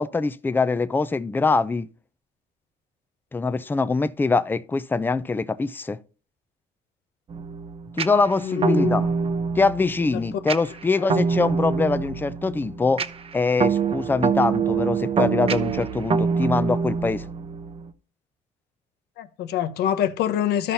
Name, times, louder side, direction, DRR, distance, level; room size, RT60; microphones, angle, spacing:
voice 1, 0.0-1.9 3.3-6.0 7.9-9.1 9.6-13.0 13.3-17.3, left 4 dB, 10° left, 0.4 m, -23 dB
sound 1, 7.3-17.9, right 5 dB, 35° right, 0.7 m, -25 dB
voice 2, 8.1-9.1 10.1-10.2 19.2-20.7, left 10 dB, 75° left, 0.9 m, -25 dB
13.5 x 5.5 x 2.7 m
cardioid pair, 110°, 17 cm